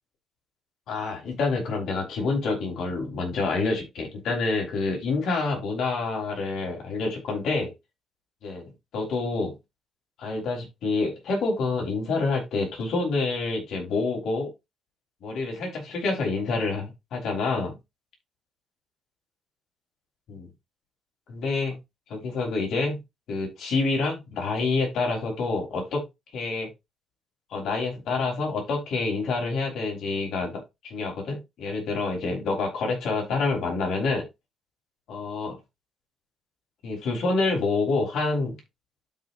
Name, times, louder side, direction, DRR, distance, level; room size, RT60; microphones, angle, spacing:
voice 1, 0.9-7.7 8.4-9.5 10.2-14.5 15.2-17.8 20.3-20.5 21.3-21.8 22.1-23.0 23.3-26.0 26.3-26.7 27.5-34.3 35.1-35.5 36.8-38.6, left 3 dB, 75° left, 0 dB, 4.1 m, -27 dB
12.5 x 5.0 x 2.7 m, 0.22 s
cardioid pair, 90°, 0 cm